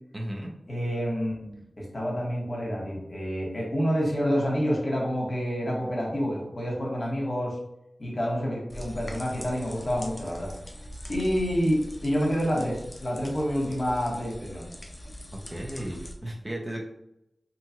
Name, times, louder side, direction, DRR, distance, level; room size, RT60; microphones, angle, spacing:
voice 1, 0.1-0.5 15.3-16.8, right 1 dB, 25° right, 0 dB, 0.6 m, -35 dB
voice 2, 0.7-7.5 8.0-10.5 11.1-14.6, equal, 50° left, -3 dB, 1.0 m, -28 dB
sound 1, 8.7-16.1, equal, 30° left, 0.5 m, -42 dB
2.8 x 2.3 x 2.8 m, 0.83 s
wide cardioid pair, 65°, 0 cm